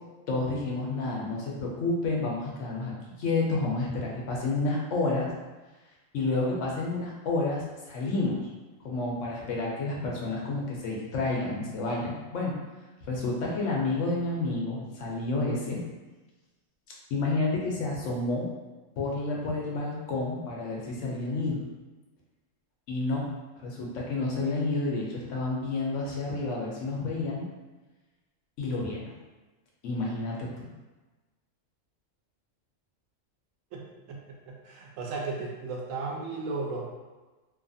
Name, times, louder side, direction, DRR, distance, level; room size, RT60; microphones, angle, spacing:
voice 1, 0.3-5.3 6.1-8.3 8.8-12.5 13.1-15.8 17.1-18.5 19.0-21.6 22.9-23.3 23.6-27.4 28.6-29.0 29.8-30.7, left 3 dB, 75° left, -3 dB, 1.0 m, -30 dB
voice 2, 33.7-34.2 34.5-36.9, right 3 dB, 90° right, -1 dB, 1.0 m, -35 dB
2.8 x 2.3 x 2.6 m, 1.2 s
omnidirectional pair, 1.3 m